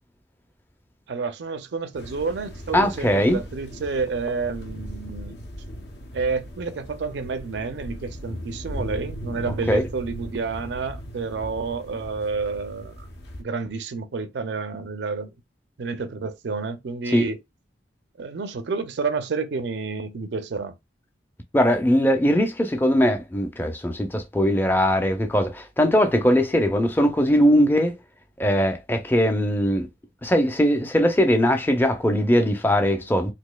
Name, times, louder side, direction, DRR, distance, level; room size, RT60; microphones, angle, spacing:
voice 1, 1.1-5.4 6.1-13.1 13.4-15.3 15.8-17.4 18.2-20.8, right 4 dB, 70° right, 0.5 m, -29 dB
sound 1, 1.9-13.4, equal, 65° left, 0.7 m, -38 dB
voice 2, 2.7-3.4 9.7-9.9 17.1-17.3 21.5-27.9 28.4-29.9 30.2-33.3, equal, 10° left, 0.4 m, -20 dB
4.0 x 2.6 x 2.2 m
head